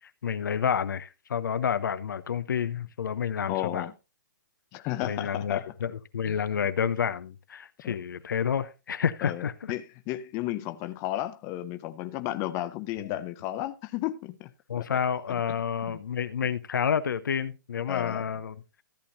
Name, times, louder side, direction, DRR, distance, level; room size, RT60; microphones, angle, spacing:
voice 1, 0.2-3.9 5.0-9.7 14.7-18.6, left 7 dB, 70° left, 0.9 m, -29 dB
voice 2, 3.5-3.9 4.7-5.7 6.3-6.4 7.8-8.0 9.2-14.5 14.8-14.9 15.5-15.6 15.9-16.0 17.9-18.3, left 14 dB, 25° left, 0.6 m, -33 dB
14.0 x 8.6 x 2.7 m
hypercardioid pair, 140°, 11 cm